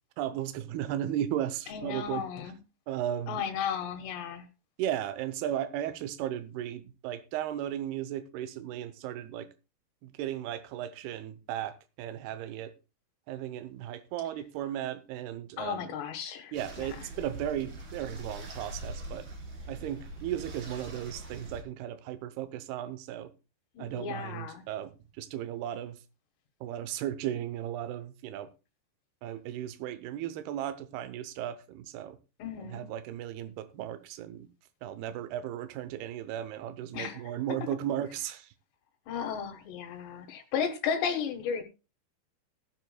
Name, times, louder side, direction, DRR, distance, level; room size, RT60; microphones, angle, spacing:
voice 1, 0.2-2.3 2.9-3.4 4.8-9.5 10.0-12.7 13.3-16.0 16.5-19.3 19.7-23.3 23.8-26.0 26.6-28.5 29.2-32.2 32.7-34.5 34.8-38.5, right 11 dB, 75° right, 2.7 m, -35 dB
voice 2, 1.7-2.6 3.3-4.5 15.6-16.9 23.8-24.7 32.4-32.9 36.9-37.2 39.1-41.6, left 7 dB, 80° left, 3.6 m, -34 dB
sound 1, 16.5-21.6, right 1 dB, 40° right, 1.9 m, -43 dB
19.0 x 7.9 x 2.3 m
omnidirectional pair, 4.9 m